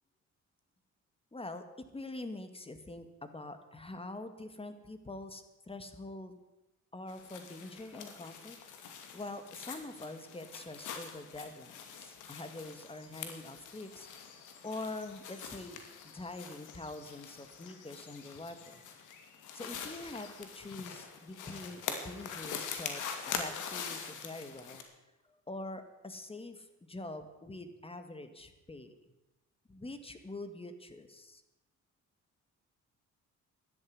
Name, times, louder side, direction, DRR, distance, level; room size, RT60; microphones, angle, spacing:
voice 1, 1.3-6.4 6.9-8.6 8.8-14.1 14.6-15.8 16.1-18.7 19.5-24.8 25.2-28.9 29.7-31.4, left 2 dB, 20° left, 9 dB, 2.1 m, -45 dB
sound 1, 7.1-24.8, left 7 dB, 85° left, 2.5 m, -44 dB
13.5 x 11.0 x 9.7 m, 0.99 s
cardioid pair, 90°, 30 cm